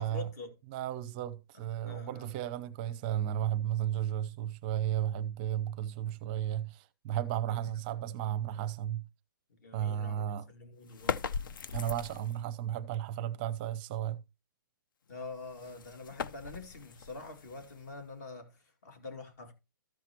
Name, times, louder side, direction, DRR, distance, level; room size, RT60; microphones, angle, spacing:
voice 1, 0.0-0.5 1.5-2.4 6.3-6.6 7.5-7.7 9.5-11.3 15.1-19.5, left 3 dB, 50° left, 2.4 m, -46 dB
voice 2, 0.7-9.1 9.7-10.5 11.7-14.2, right 11 dB, 25° right, 0.6 m, -34 dB
sound 1, 10.9-12.5 15.2-18.2, left 6 dB, 65° left, 0.6 m, -39 dB
13.5 x 5.8 x 3.0 m
hypercardioid pair, 160°, 12 cm